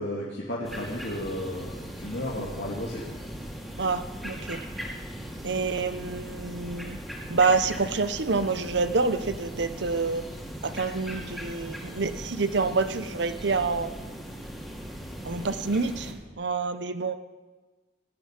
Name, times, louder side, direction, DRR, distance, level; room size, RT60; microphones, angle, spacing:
voice 1, 0.0-3.0, left 1 dB, 75° left, -5 dB, 2.3 m, -33 dB
sound 1, 0.6-16.1, equal, ahead, 2.6 m, -39 dB
voice 2, 3.8-4.6 5.4-7.0 7.3-10.2 10.6-14.0 15.2-17.1, right 4 dB, 70° right, 11 dB, 0.8 m, -27 dB
18.0 x 6.9 x 9.6 m, 1.3 s
head